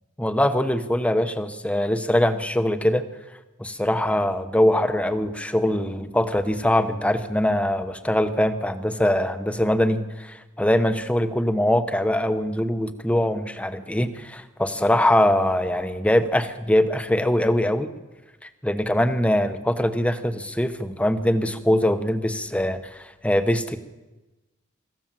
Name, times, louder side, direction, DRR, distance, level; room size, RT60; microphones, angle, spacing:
voice 1, 0.2-3.0 3.6-17.9 18.6-23.8, left 1 dB, 5° left, 9 dB, 1.0 m, -22 dB
25.0 x 14.5 x 7.5 m, 1.1 s
head